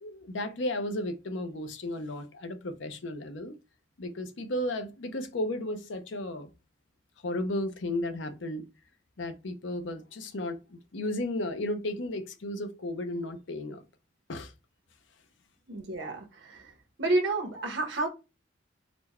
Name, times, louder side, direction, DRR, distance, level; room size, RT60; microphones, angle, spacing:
voice 1, 0.0-3.6 4.0-6.5 7.2-8.6 9.2-13.8 14.3-14.5, left 1 dB, 90° left, 0.7 m, -34 dB
voice 2, 15.7-16.7 17.0-18.1, right 2 dB, 85° right, 1.1 m, -30 dB
4.2 x 2.2 x 4.2 m
head